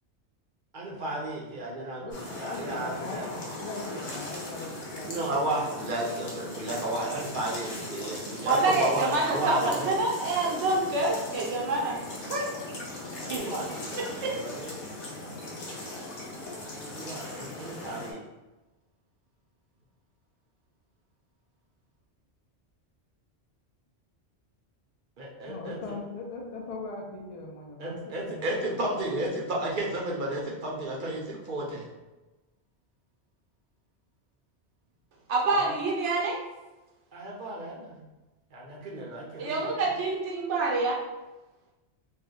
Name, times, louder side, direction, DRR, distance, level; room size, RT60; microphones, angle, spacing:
voice 1, 0.7-3.3 5.1-9.9 13.2-14.7 16.9-18.2 25.2-25.8 27.8-31.9 35.7-35.8 37.1-38.0 38.5-39.6, right 1 dB, 55° right, -3 dB, 0.7 m, -33 dB
voice 2, 2.0-5.1 25.5-28.7, left 3 dB, 60° left, -1 dB, 0.4 m, -39 dB
sound 1, 2.1-18.1, left 1 dB, 45° left, 0.7 m, -39 dB
voice 3, 8.4-12.0 12.3-12.5 13.3-13.6 14.2-14.3 35.3-36.4 39.4-41.0, right 3 dB, 90° right, -2 dB, 1.0 m, -27 dB
2.6 x 2.1 x 3.6 m, 1.1 s
omnidirectional pair, 1.1 m